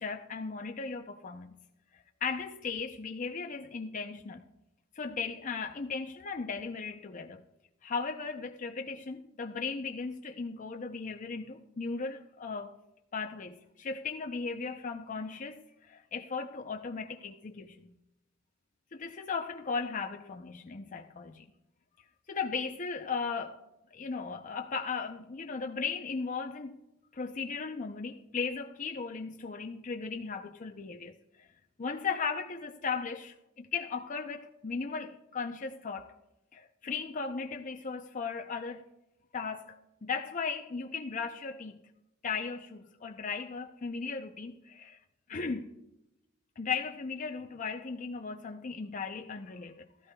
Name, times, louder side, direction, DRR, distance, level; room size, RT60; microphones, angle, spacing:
voice 1, 0.0-1.6 1.9-4.4 4.9-7.4 7.8-12.7 13.1-17.9 18.9-21.5 22.3-23.6 23.9-26.8 27.1-31.5 31.8-36.1 36.5-38.9 39.3-41.8 42.2-45.0 45.3-45.7 46.6-50.1, left 5 dB, 40° left, 0.5 m, -37 dB
16.0 x 13.0 x 2.2 m
head